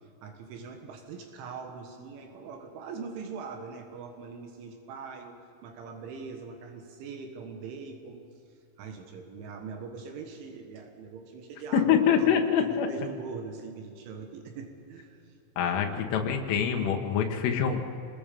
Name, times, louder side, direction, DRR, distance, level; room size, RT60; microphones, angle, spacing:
voice 1, 0.0-5.4 5.6-8.2 8.5-15.3 15.7-16.4, right 5 dB, 75° right, 4 dB, 3.9 m, -42 dB
voice 2, 11.7-12.9 15.6-17.8, left 8 dB, 90° left, 3 dB, 4.0 m, -25 dB
27.5 x 20.0 x 5.4 m, 2.6 s
omnidirectional pair, 5.6 m